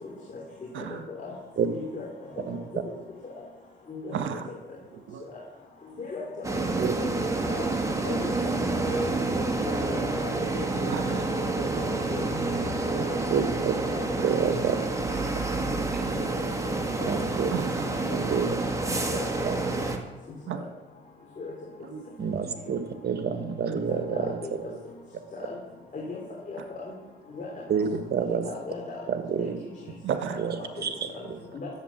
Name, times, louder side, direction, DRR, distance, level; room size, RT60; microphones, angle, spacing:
voice 1, 1.7-2.1 3.9-4.2 6.0-6.6 6.9-7.1 7.4-7.7 8.0-8.3 8.6-8.7 9.0-9.1 9.6-10.9 11.7-11.8 12.1-12.2 12.8-13.1 13.8-14.0 16.1-16.2 17.0-17.1 18.1-18.2 19.1-19.3 19.7-19.8 21.4-21.5 23.9-24.5 25.3-25.6 25.9-26.2 26.5-26.9 27.3-27.5 28.4-29.0 29.4-29.5 31.5-31.7, left 4 dB, 40° left, -3 dB, 3.3 m, -37 dB
voice 2, 2.5-2.8 6.8-7.0 13.3-13.7 14.2-14.8 17.1-17.5 18.1-18.6 19.4-19.5 22.2-24.4 24.7-24.8 27.7-28.4 29.1-29.5 30.4-31.4, right 6 dB, 55° right, 8 dB, 1.5 m, -28 dB
voice 3, 4.1-4.5 5.1-5.2 10.9-11.2 16.0-16.3 17.5-17.9 20.5-20.6 21.9-22.0 30.0-30.4, right 8 dB, 75° right, 8 dB, 1.3 m, -34 dB
sound 1, 6.4-20.0, right 2 dB, 15° right, 1.7 m, -28 dB
11.0 x 8.5 x 7.3 m, 1.2 s
cardioid pair, 90°, 20 cm